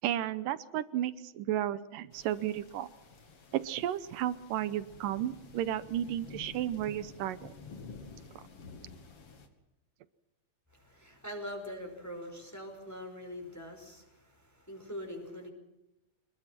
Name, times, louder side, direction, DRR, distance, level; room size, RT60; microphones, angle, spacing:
voice 1, 0.0-2.9 3.5-7.5, right 12 dB, 75° right, 15 dB, 2.4 m, -33 dB
sound 1, 2.1-9.5, left 4 dB, 45° left, 3.1 m, -51 dB
voice 2, 10.7-15.5, left 1 dB, 5° left, 2 dB, 4.9 m, -43 dB
26.5 x 21.5 x 6.0 m, 0.95 s
omnidirectional pair, 4.2 m